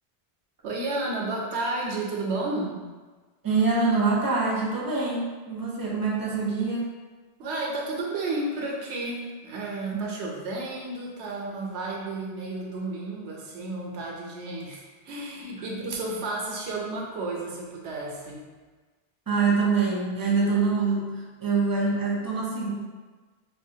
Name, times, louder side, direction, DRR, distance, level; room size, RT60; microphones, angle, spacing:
voice 1, 0.6-2.8 7.4-18.4, right 2 dB, 85° right, -2 dB, 0.9 m, -32 dB
voice 2, 3.4-6.9 9.9-10.0 19.3-22.7, right 4 dB, 25° right, -4 dB, 0.5 m, -25 dB
4.0 x 2.5 x 2.7 m, 1.3 s
omnidirectional pair, 1.1 m